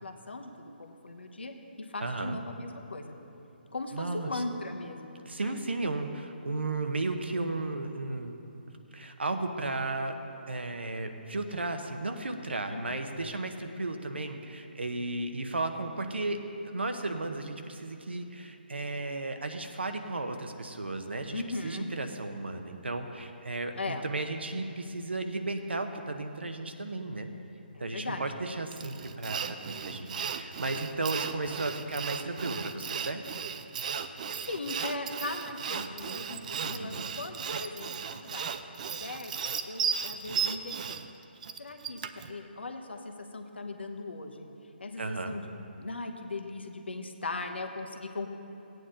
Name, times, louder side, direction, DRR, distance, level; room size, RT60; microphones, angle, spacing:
voice 1, 0.0-3.2 3.7-5.6 12.7-13.0 21.3-21.9 23.7-24.1 27.7-28.3 34.3-38.5 39.0-39.3 39.6-41.1 41.6-44.5 44.8-45.5 45.8-48.3, left 2 dB, 85° left, 5 dB, 1.1 m, -39 dB
voice 2, 2.0-2.4 3.9-4.3 5.2-8.4 8.9-10.2 10.5-16.4 16.6-27.3 27.8-33.2 35.8-35.9 36.6-37.0 45.0-45.3, right 2 dB, 85° right, 6 dB, 1.0 m, -34 dB
Sawing, 28.7-42.3, right 7 dB, 45° right, 0.5 m, -35 dB
15.5 x 9.1 x 3.8 m, 3.0 s
figure-of-eight pair, 150°, 6 cm